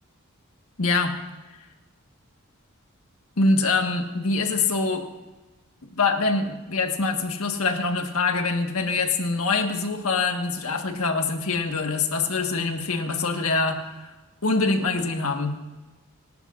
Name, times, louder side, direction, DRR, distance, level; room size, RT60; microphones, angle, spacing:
voice 1, 0.8-1.2 3.4-5.0 5.9-14.1 14.4-15.6, left 3 dB, 80° left, 3 dB, 1.6 m, -24 dB
26.5 x 11.5 x 2.6 m, 1.2 s
head